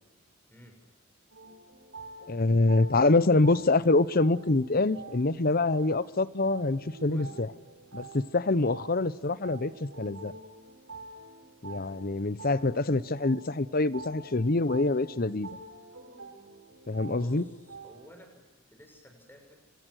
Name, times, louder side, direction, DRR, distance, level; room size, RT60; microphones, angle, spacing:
sound 1, 1.3-18.1, right 3 dB, 70° right, 7.2 m, -47 dB
voice 1, 2.3-7.5 7.9-10.3 11.6-15.6 16.9-17.4, left 2 dB, 45° left, 17 dB, 0.9 m, -25 dB
voice 2, 17.1-19.6, equal, 10° left, 3 dB, 6.6 m, -53 dB
30.0 x 24.5 x 6.5 m, 1.0 s
head